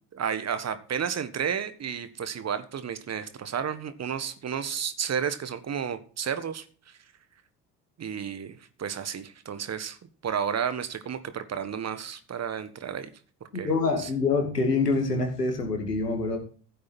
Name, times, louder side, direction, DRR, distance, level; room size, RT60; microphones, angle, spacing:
voice 1, 0.1-7.0 8.0-10.0 10.2-13.1 13.5-13.7 14.0-14.1, right 7 dB, 35° right, 11 dB, 1.6 m, -32 dB
voice 2, 13.6-16.4, left 3 dB, 85° left, 4 dB, 2.5 m, -25 dB
15.0 x 8.3 x 4.3 m, 0.41 s
figure-of-eight pair, 55°, 46 cm